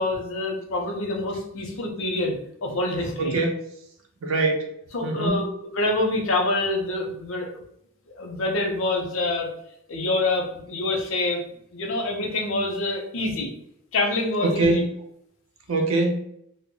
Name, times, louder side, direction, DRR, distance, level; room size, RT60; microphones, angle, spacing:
voice 1, 0.0-3.4 4.9-7.5 8.2-9.5 9.9-11.4 11.7-13.5 13.9-14.8, left 2 dB, 70° left, 2 dB, 0.6 m, -26 dB
voice 2, 3.2-3.6 4.2-4.7 5.0-5.5 14.4-14.9 15.7-16.2, right 2 dB, 90° right, 2 dB, 0.6 m, -23 dB
2.1 x 2.0 x 3.6 m, 0.74 s
head